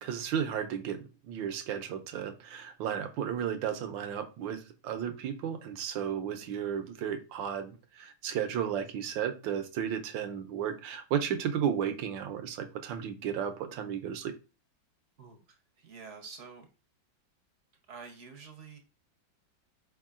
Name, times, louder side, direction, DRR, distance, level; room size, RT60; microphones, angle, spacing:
voice 1, 0.0-14.3, right 8 dB, 80° right, 7 dB, 1.4 m, -34 dB
voice 2, 15.8-16.7 17.9-18.8, right 5 dB, 55° right, 4 dB, 0.9 m, -47 dB
4.7 x 3.7 x 2.4 m, 0.32 s
omnidirectional pair, 2.1 m